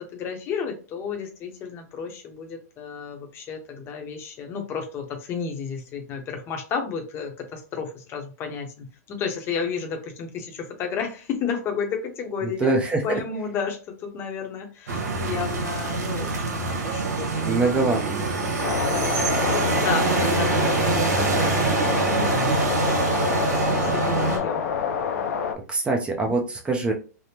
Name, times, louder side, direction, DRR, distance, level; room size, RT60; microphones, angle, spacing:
voice 1, 0.1-12.7 13.0-17.6 18.3-22.5 22.9-24.6, left 6 dB, 25° left, 4 dB, 0.7 m, -32 dB
voice 2, 12.6-13.2 17.4-18.5 25.7-26.9, right 3 dB, 10° right, 1 dB, 0.5 m, -24 dB
sound 1, 14.9-24.4, right 4 dB, 85° right, 1.0 m, -25 dB
sound 2, 18.6-25.5, left 7 dB, 65° left, 0.5 m, -27 dB
3.4 x 2.0 x 2.8 m, 0.34 s
hypercardioid pair, 140°, 9 cm